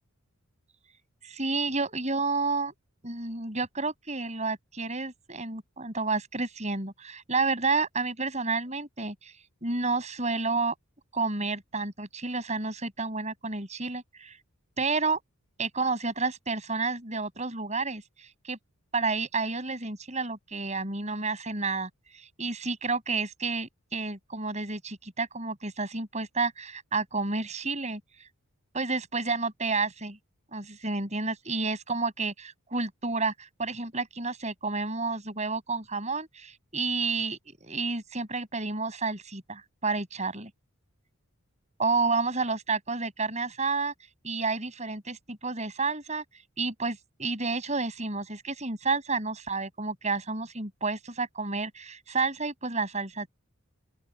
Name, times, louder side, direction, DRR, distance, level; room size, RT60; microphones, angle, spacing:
voice 1, 1.2-2.7 3.0-9.3 9.6-10.7 11.1-14.4 14.8-15.2 15.6-18.6 18.9-28.0 28.7-30.2 30.5-40.5 41.8-43.9 44.2-46.2 46.6-53.3, right 4 dB, 30° right, 6.6 m, -30 dB
open air
head